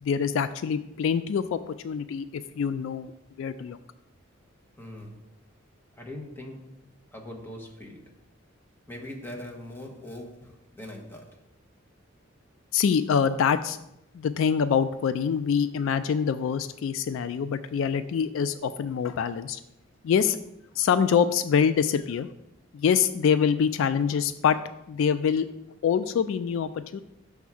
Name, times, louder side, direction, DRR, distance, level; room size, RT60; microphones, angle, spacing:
voice 1, 0.0-3.1 3.4-3.8 12.7-13.8 14.1-19.6 20.0-20.4 20.8-22.3 22.7-24.6 24.9-25.5 25.8-27.0, left 7 dB, 70° left, 12 dB, 0.3 m, -25 dB
voice 2, 4.7-5.3 5.9-6.9 7.1-8.2 8.9-11.4, left 1 dB, 10° left, -1 dB, 1.1 m, -42 dB
6.1 x 3.6 x 5.7 m, 0.83 s
head